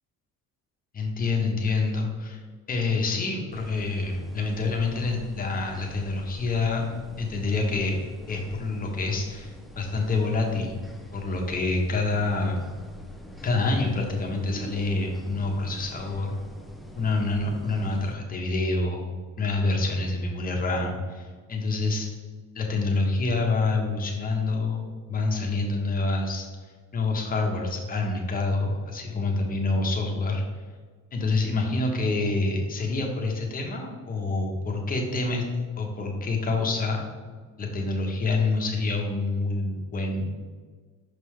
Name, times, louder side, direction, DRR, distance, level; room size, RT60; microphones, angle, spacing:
voice 1, 0.9-2.4 2.7-6.8 7.2-8.0 8.3-10.8 11.1-12.6 13.4-16.4 17.0-19.1 19.4-22.1 22.5-30.4 31.1-35.4 35.7-37.0 37.6-40.3, left 3 dB, 25° left, 1 dB, 1.0 m, -27 dB
sound 1, 3.5-18.1, equal, ahead, 0.3 m, -43 dB
5.9 x 5.5 x 3.3 m, 1.5 s
cardioid pair, 150°, 33 cm